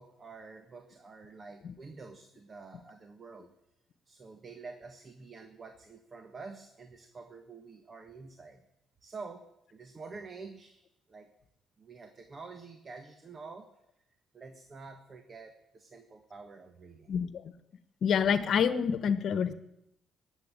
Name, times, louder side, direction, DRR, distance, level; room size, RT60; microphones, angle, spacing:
voice 1, 0.0-3.5 4.0-8.6 9.0-10.8 11.1-11.3 11.8-13.8 14.3-17.2, right 4 dB, 40° right, 6 dB, 1.6 m, -48 dB
voice 2, 17.1-17.5 18.0-19.5, left 7 dB, 65° left, 11 dB, 1.2 m, -27 dB
19.5 x 8.1 x 9.0 m, 0.84 s
cardioid pair, 90°, 0 cm